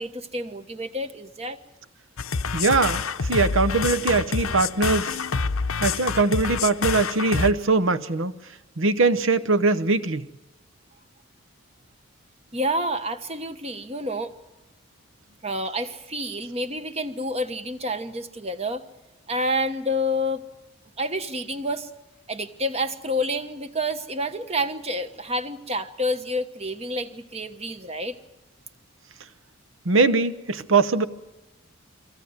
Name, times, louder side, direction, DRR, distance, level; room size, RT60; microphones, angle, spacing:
voice 1, 0.0-1.6 12.5-14.3 15.4-18.8 19.3-20.5 21.0-21.9 22.3-28.2, equal, 30° right, 1.1 m, -28 dB
sound 1, 2.2-7.5, left 5 dB, 85° left, 0.8 m, -27 dB
voice 2, 2.5-5.2 5.8-8.3 8.8-10.3 29.8-31.0, right 3 dB, 70° right, 0.9 m, -21 dB
24.5 x 16.5 x 9.6 m
head